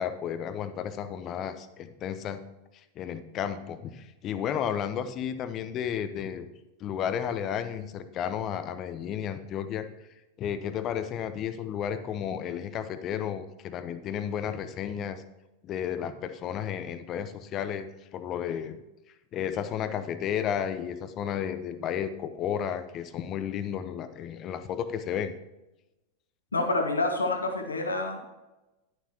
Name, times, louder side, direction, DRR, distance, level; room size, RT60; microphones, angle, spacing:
voice 1, 0.0-2.4 3.0-6.5 6.8-9.9 10.4-15.2 15.6-18.8 19.3-25.3, left 9 dB, 35° left, 11 dB, 0.9 m, -32 dB
voice 2, 26.5-28.2, left 2 dB, 75° left, 3 dB, 1.8 m, -27 dB
11.0 x 10.5 x 3.0 m, 1.0 s
figure-of-eight pair, 90°, 0 cm